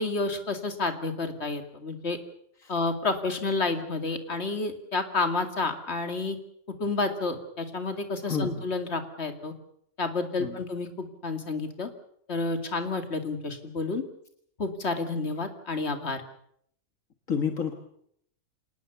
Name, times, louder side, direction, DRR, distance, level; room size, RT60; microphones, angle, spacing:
voice 1, 0.0-2.2 2.7-6.4 6.8-9.5 10.0-11.9 12.3-14.0 14.6-16.2, left 3 dB, 50° left, 7 dB, 2.7 m, -30 dB
voice 2, 8.3-8.6 10.4-10.6 17.3-17.7, left 6 dB, 65° left, 6 dB, 2.0 m, -29 dB
26.0 x 19.5 x 7.0 m, 0.69 s
omnidirectional pair, 1.5 m